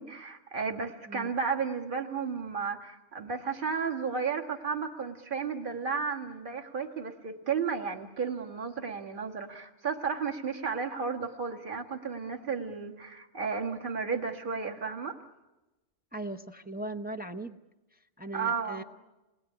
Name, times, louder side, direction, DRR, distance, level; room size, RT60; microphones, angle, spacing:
voice 1, 0.0-15.2 18.3-18.8, right 5 dB, 40° right, 3 dB, 1.9 m, -33 dB
voice 2, 16.1-17.6 18.2-18.8, right 2 dB, 10° right, 5 dB, 0.7 m, -38 dB
28.5 x 20.5 x 10.0 m, 1.1 s
omnidirectional pair, 1.3 m